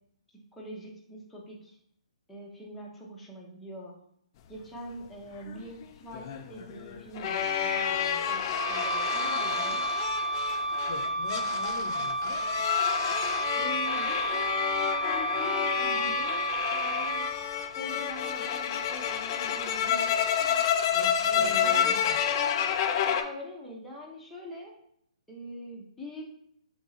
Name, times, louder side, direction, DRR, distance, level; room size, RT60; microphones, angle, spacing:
voice 1, 0.3-1.8 2.3-4.0 4.5-9.8 13.5-14.5 14.8-17.3 17.8-20.6 21.2-22.0 23.1-24.7 25.3-26.3, equal, 5° left, -4 dB, 0.8 m, -43 dB
sound 1, 5.5-23.2, left 8 dB, 35° left, 0.4 m, -29 dB
Wind instrument woodwind instrument, 8.6-17.4, right 2 dB, 45° right, 0.6 m, -31 dB
voice 2, 10.9-12.4 20.9-22.0, left 5 dB, 55° left, 4 dB, 0.7 m, -42 dB
3.6 x 3.0 x 4.1 m, 0.69 s
hypercardioid pair, 140°, 4 cm